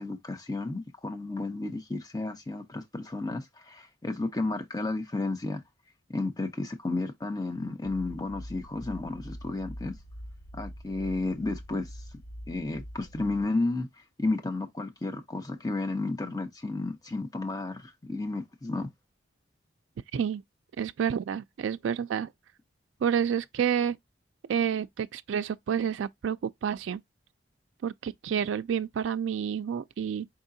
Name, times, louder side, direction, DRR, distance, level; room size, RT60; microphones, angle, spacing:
voice 1, 0.0-5.6 6.1-9.9 10.5-12.0 12.5-13.9 14.2-18.9, left 2 dB, 20° left, 0.7 m, -32 dB
sound 1, 7.8-13.4, equal, 80° left, 3.8 m, -44 dB
voice 2, 20.8-22.3 23.0-24.0 24.4-27.0 27.8-30.3, right 8 dB, 80° right, 0.3 m, -29 dB
4.9 x 3.6 x 2.6 m
head